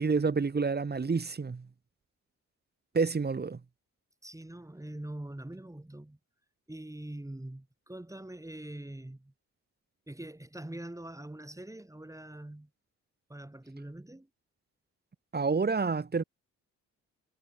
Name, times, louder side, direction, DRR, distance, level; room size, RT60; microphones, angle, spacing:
voice 1, 0.0-1.7 2.9-3.6 15.3-16.2, right 4 dB, 30° right, 1.6 m, -28 dB
voice 2, 4.2-6.2 6.7-9.3 10.1-12.7 13.3-14.3, right 1 dB, 10° right, 2.6 m, -43 dB
cardioid pair, 70°, 34 cm